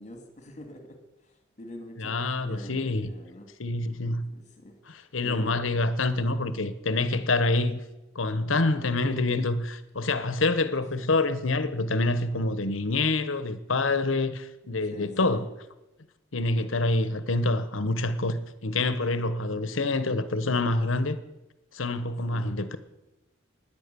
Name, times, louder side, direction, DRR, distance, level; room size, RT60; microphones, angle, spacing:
voice 1, 0.0-3.5 3.9-4.0 4.3-4.8 5.2-5.6 14.9-15.5 22.3-22.6, left 1 dB, 35° left, 2.5 m, -45 dB
voice 2, 2.0-3.1 3.6-4.3 4.9-7.8 8.1-15.5 16.3-21.2 21.7-22.8, left 2 dB, 85° left, 1.2 m, -26 dB
17.0 x 10.5 x 7.0 m
head